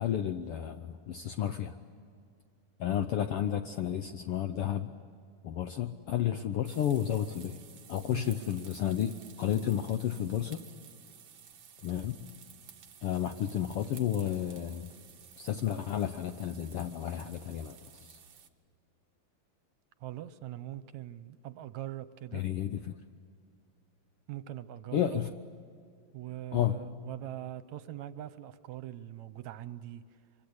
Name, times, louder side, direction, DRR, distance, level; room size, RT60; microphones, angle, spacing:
voice 1, 0.0-1.7 2.8-4.9 5.4-7.6 7.9-10.6 11.8-12.2 13.0-14.9 15.4-17.8 18.1-18.2 22.3-23.0 24.9-25.3 26.5-26.8, left 10 dB, 75° left, 8 dB, 1.3 m, -32 dB
sound 1, 6.6-18.5, right 8 dB, 55° right, 1.3 m, -54 dB
voice 2, 20.0-22.4 24.3-25.2 26.1-30.0, right 13 dB, 75° right, 14 dB, 2.0 m, -42 dB
25.0 x 25.0 x 8.0 m, 2.3 s
omnidirectional pair, 3.5 m